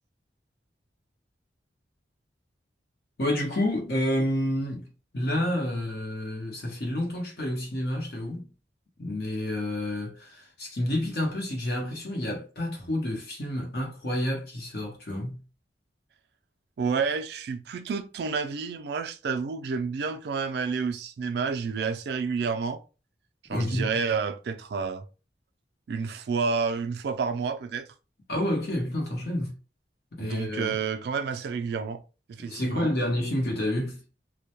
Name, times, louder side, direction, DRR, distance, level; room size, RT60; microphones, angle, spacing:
voice 1, 3.2-4.9 5.1-8.5 9.0-15.4 23.5-23.9 28.3-29.6 30.1-30.7 32.4-34.0, left 1 dB, 55° left, 0.8 m, -29 dB
voice 2, 16.8-22.8 23.5-25.0 25.9-27.9 30.2-32.0 32.3-32.9, right 5 dB, 65° right, 0.3 m, -29 dB
2.2 x 2.1 x 2.8 m
head